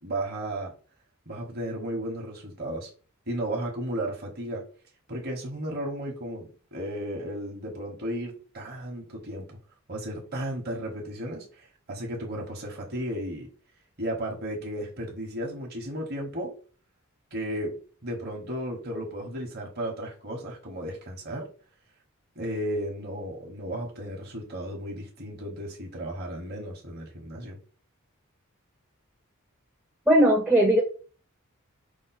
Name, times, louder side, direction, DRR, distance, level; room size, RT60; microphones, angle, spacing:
voice 1, 0.0-0.7 1.3-2.9 3.3-4.6 5.1-9.6 9.9-13.5 14.0-16.5 17.3-17.8 18.0-21.5 22.4-27.6, right 1 dB, 45° right, 0.9 m, -34 dB
voice 2, 30.1-30.8, right 1 dB, 5° right, 0.4 m, -18 dB
4.8 x 2.1 x 4.0 m
head